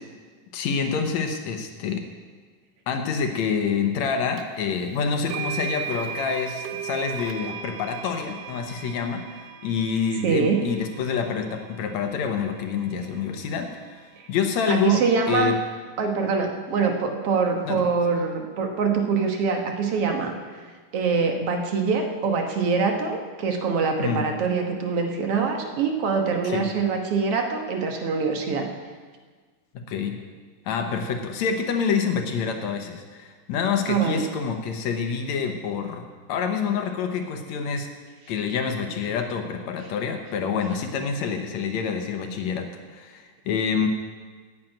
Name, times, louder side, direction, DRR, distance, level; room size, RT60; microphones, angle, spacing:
voice 1, 0.5-2.1 2.9-15.6 17.6-17.9 24.0-24.2 26.4-26.7 29.7-30.2 30.7-37.9 38.3-43.9, left 6 dB, 70° left, 5 dB, 2.0 m, -27 dB
sound 1, 4.4-4.5 5.3-13.3, right 8 dB, 75° right, 2.1 m, -37 dB
voice 2, 10.2-10.6 14.7-15.5 16.0-20.3 20.9-28.7 33.9-34.3, right 5 dB, 60° right, 3 dB, 1.8 m, -24 dB
10.5 x 9.0 x 8.9 m, 1.5 s
omnidirectional pair, 3.7 m